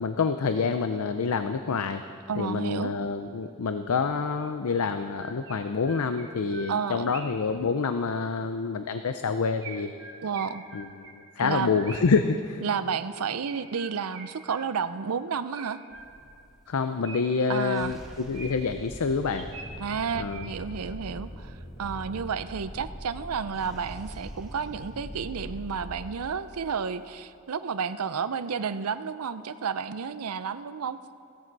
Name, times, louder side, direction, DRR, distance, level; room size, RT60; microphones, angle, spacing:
voice 1, 0.0-2.0 2.4-9.9 10.7-11.1 11.4-12.6 16.7-19.5 20.2-20.5, left 5 dB, 80° left, 9 dB, 0.5 m, -27 dB
voice 2, 2.3-2.9 6.7-7.1 10.2-10.6 11.4-11.8 12.6-15.8 17.5-18.0 19.8-31.0, right 6 dB, 90° right, 13 dB, 0.6 m, -31 dB
Chirp tweet, 4.9-7.5 9.6-12.3 13.4-15.0 15.5-16.4 17.0-18.8 19.3-20.8, right 3 dB, 60° right, 1.7 m, -45 dB
sound 1, 15.9-16.6 17.6-27.0, equal, ahead, 2.1 m, -42 dB
17.0 x 13.5 x 4.7 m, 2.4 s
head